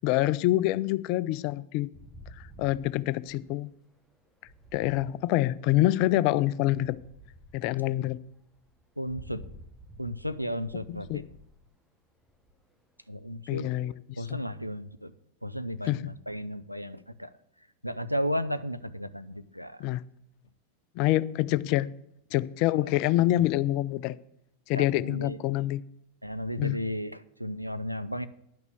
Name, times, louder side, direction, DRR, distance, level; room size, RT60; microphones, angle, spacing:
voice 1, 0.0-1.9 2.4-3.7 4.7-7.0 7.5-8.2 10.9-11.2 13.5-13.9 14.3-14.4 15.8-16.1 19.8-20.0 21.0-21.9 22.3-24.2 24.7-25.8 26.6-26.8, left 15 dB, 45° left, 0.4 m, -26 dB
sound 1, 1.9-5.9 6.6-13.0, equal, ahead, 1.2 m, -51 dB
voice 2, 9.0-9.4 10.0-11.2 13.1-13.7 14.2-15.1 15.4-17.3 17.8-19.8 22.7-22.9 24.7-25.4 26.2-28.3, equal, 90° right, 0.5 m, -34 dB
10.5 x 6.0 x 7.0 m
figure-of-eight pair, 90°, 0 cm